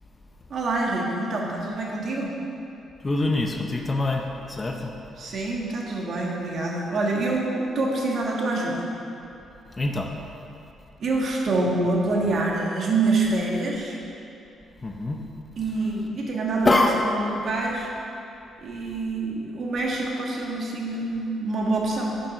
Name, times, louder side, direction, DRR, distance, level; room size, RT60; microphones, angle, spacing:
voice 1, 0.5-2.3 5.2-8.8 11.0-14.0 15.6-17.9 18.6-22.2, right 2 dB, 55° right, -2 dB, 1.5 m, -26 dB
voice 2, 3.0-4.2 4.5-4.8 9.8-10.1 14.8-15.2 16.6-16.9, left 2 dB, 25° left, 2 dB, 0.6 m, -23 dB
7.2 x 5.5 x 5.5 m, 2.7 s
cardioid pair, 90°, 0 cm